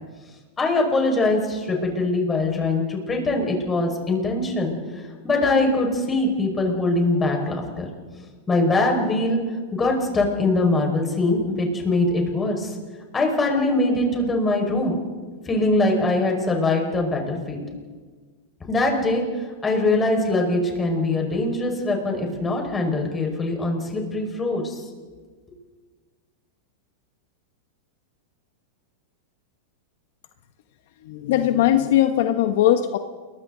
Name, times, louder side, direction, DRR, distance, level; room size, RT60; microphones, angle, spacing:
voice 1, 0.6-7.9 8.5-9.4 9.7-12.7 13.1-15.0 15.5-17.6 18.7-19.2 19.6-24.8, left 2 dB, 15° left, 1 dB, 5.3 m, -22 dB
voice 2, 31.0-33.0, left 12 dB, 65° left, 8 dB, 1.1 m, -19 dB
29.0 x 22.5 x 4.0 m, 1.4 s
supercardioid pair, 140°, 0 cm